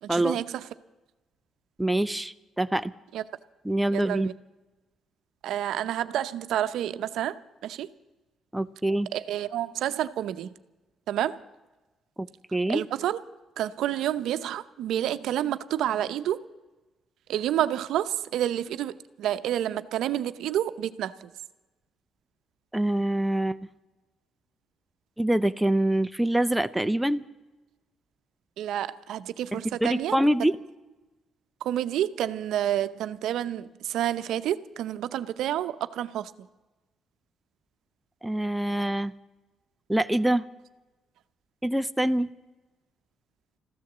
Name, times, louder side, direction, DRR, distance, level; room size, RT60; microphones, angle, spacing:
voice 1, 0.0-0.7 3.1-3.2 3.9-4.3 5.4-7.4 7.6-7.9 9.1-10.5 11.1-11.4 12.7-13.2 13.6-16.4 17.3-21.3 28.6-30.2 31.6-36.3, right 11 dB, 80° right, 12 dB, 0.7 m, -29 dB
voice 2, 1.8-2.9 3.6-4.3 8.5-9.1 12.2-12.8 22.7-23.7 25.2-27.2 29.5-30.6 38.2-39.1 39.9-40.5 41.6-42.3, right 1 dB, 5° right, 11 dB, 0.6 m, -25 dB
14.0 x 12.5 x 7.9 m, 1.1 s
cardioid pair, 90°, 0 cm